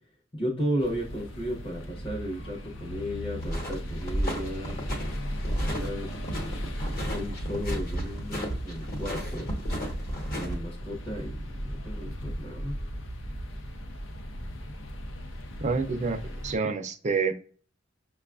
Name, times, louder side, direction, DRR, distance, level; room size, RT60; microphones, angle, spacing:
voice 1, 0.3-4.9 5.7-6.1 7.1-9.5 10.4-12.7, equal, 30° left, 0.7 m, -34 dB
sound 1, 0.8-16.6, equal, 80° left, 0.6 m, -37 dB
sound 2, 3.4-10.6, equal, 50° left, 1.1 m, -33 dB
voice 2, 15.6-17.3, right 4 dB, 40° right, 0.5 m, -28 dB
5.9 x 2.3 x 2.3 m
head